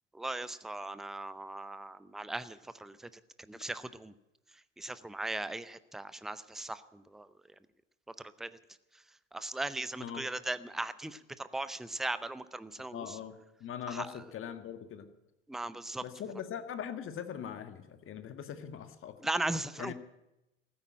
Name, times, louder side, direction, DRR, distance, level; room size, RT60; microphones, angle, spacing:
voice 1, 0.1-4.2 4.5-7.3 8.1-8.6 8.9-13.2 13.9-14.1 15.5-16.0 19.2-19.9, right 2 dB, ahead, 15 dB, 0.5 m, -38 dB
voice 2, 12.9-15.1 16.0-19.1 19.8-19.9, left 8 dB, 35° left, 9 dB, 1.6 m, -41 dB
15.0 x 8.8 x 9.8 m, 0.95 s
figure-of-eight pair, 75°, 36 cm